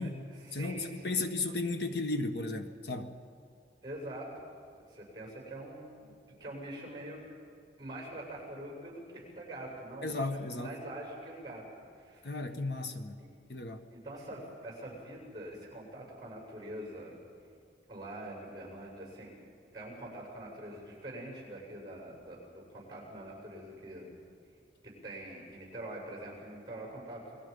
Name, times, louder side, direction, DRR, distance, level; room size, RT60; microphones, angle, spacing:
voice 1, 0.0-1.2 3.8-4.4 4.9-7.2 7.8-12.3 13.2-13.3 13.9-17.2 17.9-19.3 19.7-24.1 24.8-27.4, right 1 dB, 25° right, -1 dB, 7.2 m, -44 dB
voice 2, 0.5-3.2 10.0-10.7 12.2-13.2 13.5-13.8, left 2 dB, 75° left, 6 dB, 1.5 m, -34 dB
29.5 x 21.0 x 5.4 m, 2.3 s
head